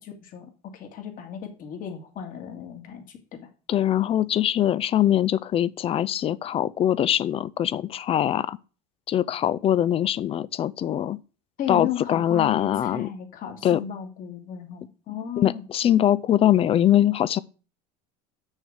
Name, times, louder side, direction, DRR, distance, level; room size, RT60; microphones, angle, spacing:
voice 1, 0.0-3.5 11.6-15.6, left 9 dB, 45° left, 2.2 m, -35 dB
voice 2, 3.7-8.6 9.1-11.2 11.7-13.1 13.6-13.8 15.4-17.4, left 11 dB, 30° left, 0.4 m, -22 dB
6.4 x 6.2 x 6.5 m
supercardioid pair, 110°, 19 cm